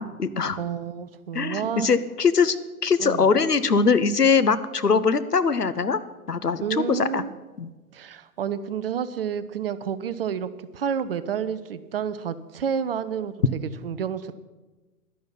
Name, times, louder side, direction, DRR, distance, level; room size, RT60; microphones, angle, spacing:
voice 1, 0.0-0.6 1.3-2.6 2.8-6.0 6.3-7.2 7.6-7.7, left 5 dB, 90° left, 13 dB, 0.8 m, -22 dB
voice 2, 0.6-1.9 3.0-3.3 6.6-7.3 7.9-13.3 13.8-14.3, right 8 dB, 40° right, 14 dB, 0.6 m, -29 dB
11.5 x 9.5 x 5.7 m, 1.2 s
figure-of-eight pair, 115°, 46 cm